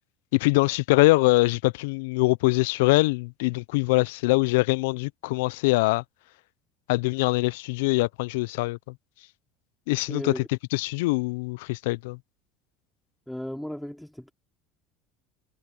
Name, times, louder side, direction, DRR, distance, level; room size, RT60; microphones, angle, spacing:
voice 1, 0.3-6.0 6.9-8.8 9.9-10.4 10.7-12.2, left 23 dB, 70° left, 0.8 m, -23 dB
voice 2, 10.1-10.5 13.3-14.3, equal, ahead, 3.7 m, -35 dB
hypercardioid pair, 75°, 0 cm